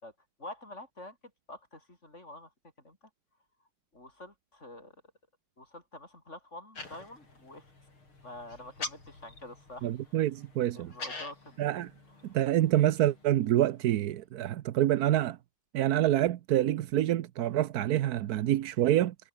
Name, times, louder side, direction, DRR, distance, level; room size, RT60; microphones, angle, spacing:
voice 1, 0.4-1.2 1.5-2.5 2.8-3.0 3.9-4.9 5.6-7.6 8.2-9.9 10.7-11.6 12.2-12.3, left 2 dB, 30° left, 6.3 m, -47 dB
sound 1, 6.8-14.0, left 3 dB, 80° left, 7.2 m, -46 dB
voice 2, 9.8-10.9 11.6-11.9 12.3-15.4 15.7-19.1, right 13 dB, 65° right, 0.9 m, -27 dB
omnidirectional pair, 2.3 m